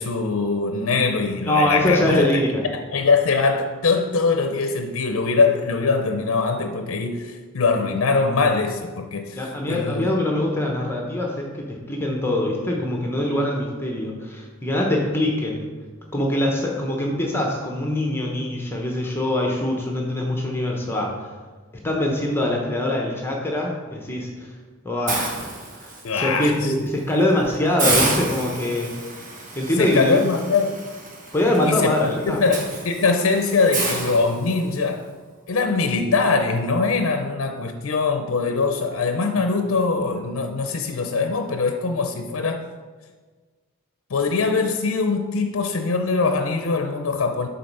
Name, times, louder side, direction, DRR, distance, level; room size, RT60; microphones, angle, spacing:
voice 1, 0.0-2.3 2.9-10.1 26.0-26.7 29.8-30.8 31.7-35.1 35.5-42.6 44.1-47.5, left 4 dB, 75° left, 6 dB, 0.5 m, -22 dB
voice 2, 1.5-2.6 9.4-15.7 16.1-21.3 21.8-24.5 24.8-25.5 25.7-28.9 29.6-30.2 31.3-32.4, left 1 dB, 10° left, -1 dB, 0.8 m, -23 dB
Hiss, 25.1-26.2 26.7-26.9 27.2-27.3 27.8-34.9, right 2 dB, 40° right, 1.1 m, -29 dB
7.6 x 4.0 x 5.4 m, 1.4 s
head